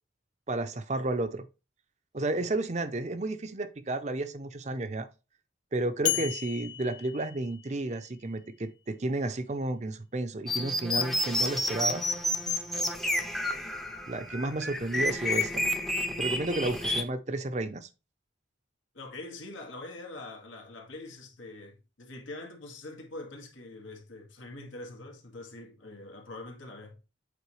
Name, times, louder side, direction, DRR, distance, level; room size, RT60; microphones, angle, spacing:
voice 1, 0.5-1.5 2.1-5.1 5.7-12.1 14.1-15.7 16.2-17.9, right 2 dB, 35° right, 0.6 m, -32 dB
sound 1, 6.0-8.1, left 14 dB, 70° left, 0.4 m, -34 dB
sound 2, 10.5-17.0, left 1 dB, ahead, 0.6 m, -30 dB
voice 2, 16.7-17.0 18.9-27.0, left 2 dB, 90° left, 1.8 m, -44 dB
8.3 x 4.4 x 3.2 m
head